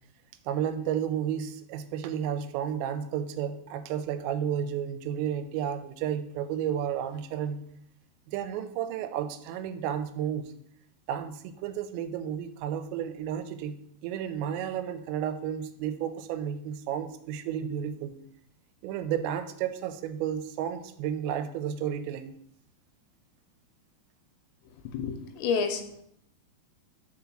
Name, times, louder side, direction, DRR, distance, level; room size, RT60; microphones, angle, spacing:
voice 1, 0.5-7.6 8.3-10.5 11.1-18.2 18.8-22.3, right 9 dB, 90° right, 10 dB, 2.9 m, -32 dB
voice 2, 24.9-26.0, left 5 dB, 85° left, 7 dB, 2.9 m, -29 dB
5.3 x 5.2 x 6.0 m, 0.72 s
omnidirectional pair, 5.0 m